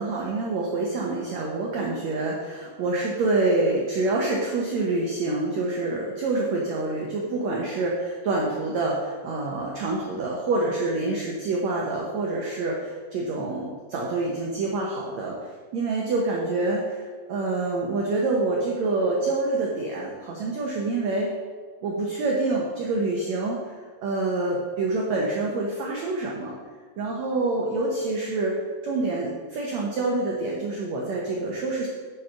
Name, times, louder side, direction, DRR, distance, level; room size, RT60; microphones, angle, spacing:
voice 1, 0.0-15.4 15.7-21.3 21.8-23.8 24.0-26.5 27.0-31.9, right 2 dB, 85° right, -2 dB, 1.5 m, -26 dB
9.4 x 5.3 x 5.7 m, 1.5 s
omnidirectional pair, 4.6 m